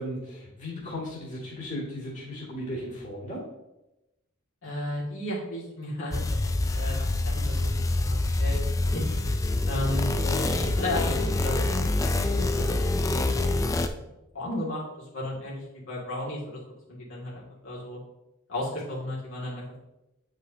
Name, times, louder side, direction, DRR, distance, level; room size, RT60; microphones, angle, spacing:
voice 1, 0.0-3.5 10.0-10.1, equal, 35° left, -7 dB, 2.2 m, -36 dB
voice 2, 4.6-6.2 6.6-8.6 8.9-9.0 9.7-13.7 13.9-16.6 16.9-18.0 18.5-19.9, left 1 dB, 65° left, -6 dB, 2.1 m, -34 dB
sound 1, 6.1-13.9, left 2 dB, 15° left, 0.3 m, -26 dB
9.0 x 5.0 x 2.8 m, 0.92 s
head